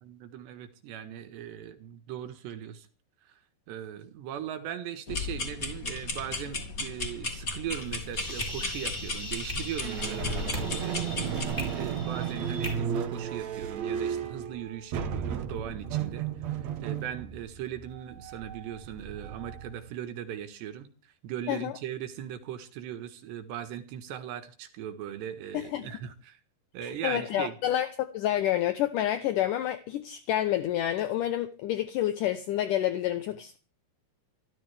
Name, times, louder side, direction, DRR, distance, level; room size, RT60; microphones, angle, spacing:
voice 1, 0.0-2.9 3.3-3.4 3.7-20.9 21.2-26.4 26.7-27.6, right 10 dB, 80° right, 3.8 m, -39 dB
sound 1, 5.1-11.5, left 3 dB, 25° left, 2.1 m, -35 dB
sound 2, 7.7-12.7, left 1 dB, 10° left, 5.3 m, -40 dB
sound 3, 9.8-19.9, right 8 dB, 60° right, 2.1 m, -34 dB
voice 2, 25.5-25.9 26.8-33.6, left 12 dB, 70° left, 2.0 m, -29 dB
26.5 x 14.0 x 3.5 m
omnidirectional pair, 4.9 m